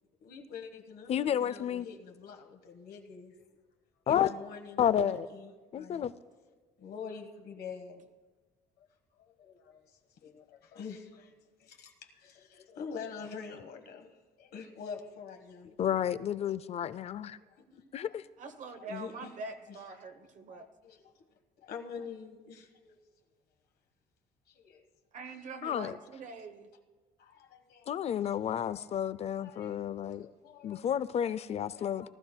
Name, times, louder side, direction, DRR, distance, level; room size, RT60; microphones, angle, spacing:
voice 1, 0.2-3.3 4.1-6.1 6.8-8.1 9.1-15.7 17.4-18.2 18.8-19.3 19.7-19.8 20.5-21.2 21.6-23.0 24.5-24.8 25.3-25.4 26.0-26.1 27.2-28.3 28.7-28.8 29.4-30.9 31.5-32.1, left 6 dB, 70° left, 4 dB, 1.2 m, -46 dB
voice 2, 1.1-1.9 4.1-4.3 4.8-5.3 5.7-6.1 15.8-17.4 17.9-18.3 25.6-26.0 27.9-30.3 30.6-32.1, left 9 dB, 40° left, 17 dB, 0.4 m, -31 dB
voice 3, 18.4-20.7 25.1-26.7, right 3 dB, 50° right, 6 dB, 0.8 m, -44 dB
19.0 x 12.5 x 2.2 m, 1.3 s
cardioid pair, 110°, 17 cm